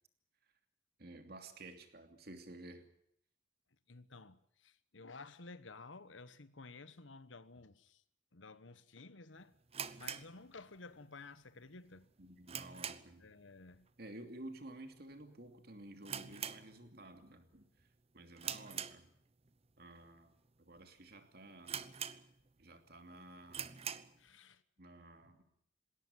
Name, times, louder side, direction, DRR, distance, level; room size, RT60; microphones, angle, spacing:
voice 1, 1.0-2.9 12.2-13.2 14.0-17.7 18.1-19.1 19.8-21.8 22.6-23.7 24.8-25.4, right 1 dB, 55° right, 2.8 m, -53 dB
voice 2, 3.9-8.0 8.3-9.6 10.0-12.1 13.2-13.9 24.2-24.6 25.2-25.3, left 3 dB, 90° left, 1.2 m, -54 dB
sound 1, 9.7-11.1 11.3-11.4 11.9-13.3 13.6-13.9 14.2-14.3 14.9-15.2 15.5-15.6 16.0-17.2 17.5-17.8 18.4-19.5 20.1-20.2 20.8-20.9 21.1-21.2 21.7-22.6 23.0-23.1 23.5-24.2, right 8 dB, 30° right, 0.8 m, -44 dB
20.0 x 17.5 x 9.7 m
head